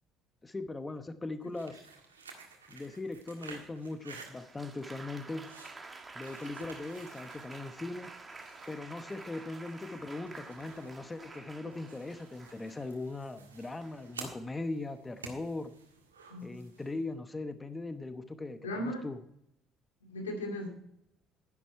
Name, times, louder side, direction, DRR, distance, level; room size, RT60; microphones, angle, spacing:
voice 1, 0.4-1.9 2.7-5.5 6.1-8.1 8.7-15.7 16.4-19.2, left 2 dB, 20° left, 10 dB, 0.9 m, -40 dB
sound 1, 1.4-17.0, right 4 dB, 90° right, 1.7 m, -52 dB
Applause, 4.1-13.0 13.8-14.2, right 3 dB, 25° right, 1.9 m, -49 dB
voice 2, 18.6-19.0 20.0-20.7, left 1 dB, 85° left, 2 dB, 2.4 m, -36 dB
11.0 x 10.5 x 4.5 m, 0.73 s
hypercardioid pair, 55°, 0 cm